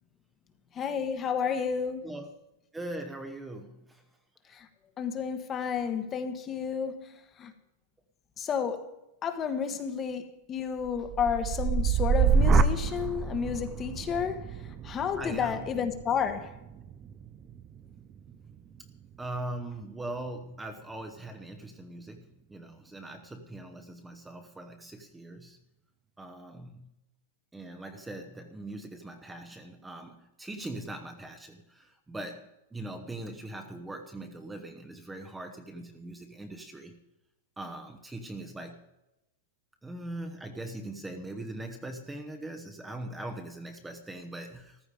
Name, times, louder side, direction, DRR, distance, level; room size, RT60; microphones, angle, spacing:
voice 1, 0.7-2.0 4.5-4.7 5.0-7.1 7.4-7.5 8.4-8.9 9.2-14.4 14.8-16.5, left 7 dB, 20° left, 1.3 m, -31 dB
voice 2, 2.7-4.0 4.5-4.6 15.2-15.9 19.2-25.6 26.2-26.9 27.5-36.9 37.6-38.8 39.8-44.8, right 1 dB, 5° right, 1.1 m, -41 dB
sound 1, 10.8-18.9 19.3-19.8, right 5 dB, 25° right, 0.6 m, -28 dB
14.5 x 13.0 x 4.9 m
supercardioid pair, 155°, 0 cm